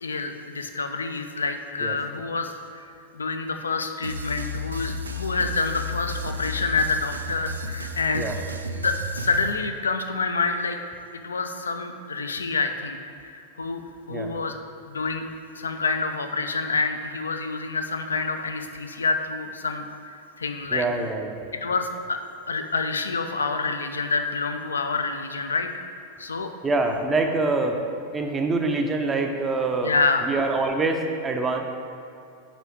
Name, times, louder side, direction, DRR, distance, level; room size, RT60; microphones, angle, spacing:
voice 1, 0.0-2.8 3.1-8.3 8.8-10.8 11.1-13.8 14.1-14.5 14.9-15.3 15.6-20.8 21.6-22.2 22.5-25.7 26.2-26.5 29.8-30.3, left 4 dB, 70° left, 7 dB, 0.4 m, -27 dB
sound 1, 4.0-9.5, left 1 dB, 75° right, 0.3 m, -33 dB
voice 2, 20.7-21.4 26.6-27.8 28.1-29.9 30.2-31.6, right 3 dB, 15° right, 3 dB, 0.6 m, -25 dB
5.0 x 4.8 x 4.5 m, 2.5 s
figure-of-eight pair, 90°, 0 cm